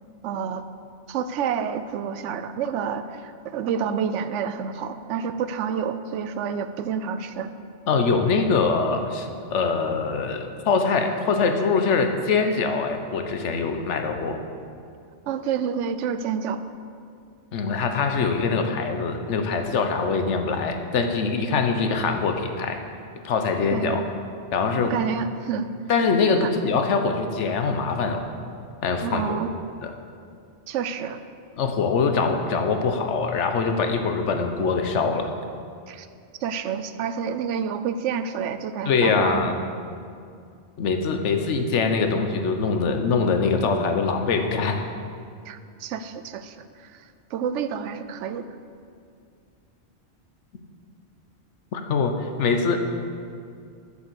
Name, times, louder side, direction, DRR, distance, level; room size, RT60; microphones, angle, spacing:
voice 1, 0.2-0.6 1.1-7.5 15.3-16.6 23.7-24.0 24.8-25.7 26.4-26.5 29.0-29.5 30.7-31.2 35.9-36.1 36.4-39.5 45.5-48.5, right 7 dB, 90° right, 11 dB, 0.9 m, -29 dB
voice 2, 7.9-14.4 17.5-22.8 23.2-24.0 24.5-24.9 25.9-28.2 28.8-29.4 29.8-29.9 31.6-35.3 38.9-39.6 40.8-44.8 51.7-52.8, left 4 dB, 80° left, 5 dB, 1.1 m, -23 dB
7.2 x 7.0 x 6.7 m, 2.3 s
omnidirectional pair, 1.2 m